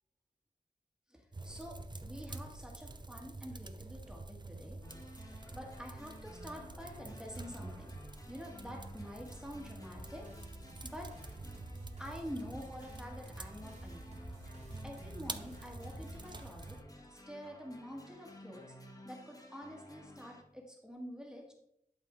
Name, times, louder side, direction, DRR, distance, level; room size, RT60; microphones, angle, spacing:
voice 1, 1.1-4.8 5.3-8.0 8.3-10.3 10.8-11.2 12.0-14.1 14.4-14.5 14.8-16.8 17.1-18.8 19.0-21.5, equal, 5° right, -1 dB, 1.6 m, -47 dB
sound 1, 1.3-16.8, right 2 dB, 30° right, 0.6 m, -48 dB
sound 2, 4.8-20.4, left 1 dB, 25° left, 1.1 m, -54 dB
sound 3, 9.8-17.0, equal, 50° right, 1.7 m, -52 dB
11.0 x 4.7 x 3.7 m, 0.76 s
wide cardioid pair, 80°, 15 cm